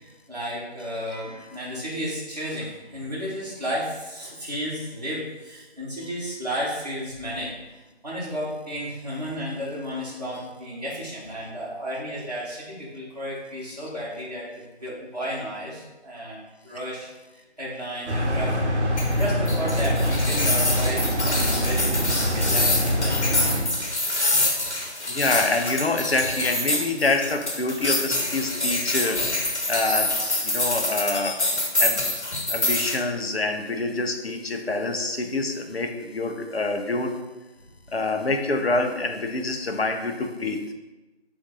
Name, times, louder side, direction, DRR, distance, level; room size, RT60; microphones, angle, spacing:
voice 1, 0.0-7.5 8.0-18.6 19.2-23.2 24.0-24.7, equal, 35° right, -8 dB, 1.0 m, -33 dB
sound 1, 18.1-23.6, equal, 85° right, 0.8 m, -24 dB
sound 2, 19.0-33.0, left 1 dB, 85° left, 1.0 m, -26 dB
voice 2, 25.1-29.2 29.7-30.1 30.4-31.4 31.8-32.0 32.5-37.2 37.9-40.7, left 2 dB, 65° left, 4 dB, 0.5 m, -26 dB
3.7 x 2.5 x 3.9 m, 1.1 s
figure-of-eight pair, 170°, 34 cm